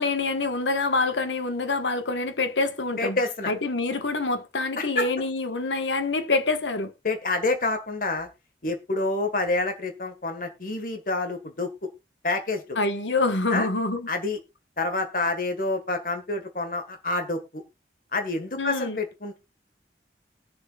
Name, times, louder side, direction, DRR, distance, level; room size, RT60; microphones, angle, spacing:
voice 1, 0.0-3.2 3.5-6.9 12.7-14.1 18.6-19.0, left 3 dB, 90° left, 1.3 m, -26 dB
voice 2, 3.0-3.5 4.8-5.1 7.0-8.3 8.6-11.7 12.2-12.6 13.5-13.7 14.1-14.4 14.8-17.6 18.1-19.4, left 2 dB, 50° left, 1.6 m, -28 dB
20.5 x 7.0 x 2.4 m
head